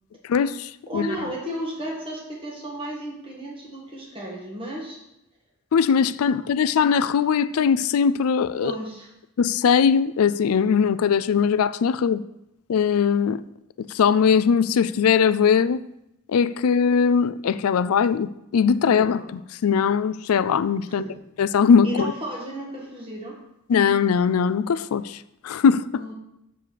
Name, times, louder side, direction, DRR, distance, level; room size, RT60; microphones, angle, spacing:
voice 1, 0.3-1.1 5.7-8.7 9.4-12.2 12.7-13.4 13.8-15.8 16.3-21.0 21.4-22.1 23.7-25.2 25.4-26.1, left 6 dB, 80° left, 0.4 m, -20 dB
voice 2, 0.9-5.0 6.3-6.4 8.5-9.1 11.9-12.0 18.8-19.3 20.8-21.0 21.8-23.4 25.9-26.1, right 1 dB, 25° right, 1.7 m, -34 dB
7.1 x 6.8 x 4.7 m
head